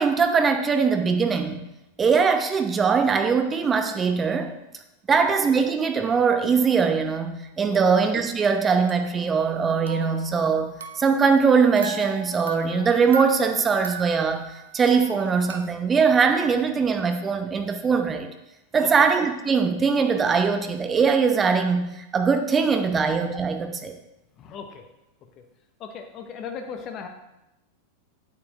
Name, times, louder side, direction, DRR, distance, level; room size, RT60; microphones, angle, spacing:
voice 1, 0.0-1.6 2.0-4.5 5.1-18.3 18.7-23.9, right 5 dB, 20° right, 6 dB, 0.9 m, -21 dB
sound 1, 8.4-9.6 9.9-11.3 11.8-15.7, right 4 dB, 70° right, 0.6 m, -38 dB
voice 2, 24.4-24.9 25.4-25.5 25.8-27.1, left 6 dB, 35° left, 6 dB, 0.9 m, -37 dB
8.7 x 7.6 x 3.4 m, 0.92 s
figure-of-eight pair, 90°, 0 cm